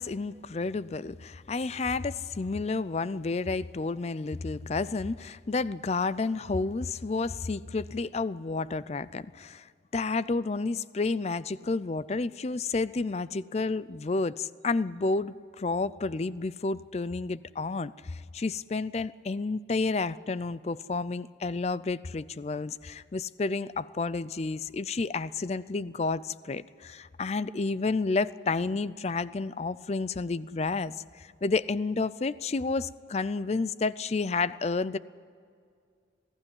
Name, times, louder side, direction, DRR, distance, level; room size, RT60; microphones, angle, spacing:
voice 1, 0.0-9.7 9.9-35.0, left 3 dB, 35° left, 18 dB, 0.4 m, -30 dB
20.5 x 14.5 x 9.7 m, 2.2 s
head